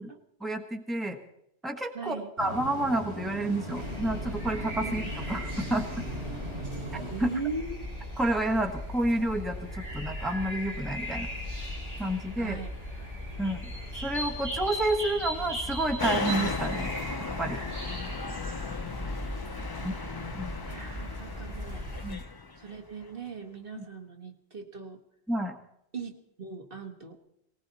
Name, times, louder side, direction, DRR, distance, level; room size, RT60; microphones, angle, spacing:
voice 1, 0.4-1.2 1.6-5.0 5.3-6.0 6.9-7.3 8.2-9.6 9.9-11.3 12.0-12.6 13.4-13.7 14.0-16.9 17.4-17.6 19.8-19.9 20.3-20.5 22.0-22.2 25.3-25.6, right 1 dB, ahead, 5 dB, 1.2 m, -29 dB
voice 2, 1.9-2.3 4.8-5.1 7.1-7.9 12.4-12.7 13.3-13.6 18.7-21.9 22.6-25.0 25.9-27.2, right 4 dB, 55° right, 4 dB, 1.8 m, -40 dB
sound 1, 2.4-7.4, right 1 dB, 80° right, 8.1 m, -39 dB
sound 2, 3.7-22.1, equal, 35° right, 4.8 m, -38 dB
sound 3, 16.0-23.0, left 4 dB, 25° left, 0.5 m, -35 dB
19.0 x 18.5 x 4.1 m, 0.78 s
omnidirectional pair, 1.1 m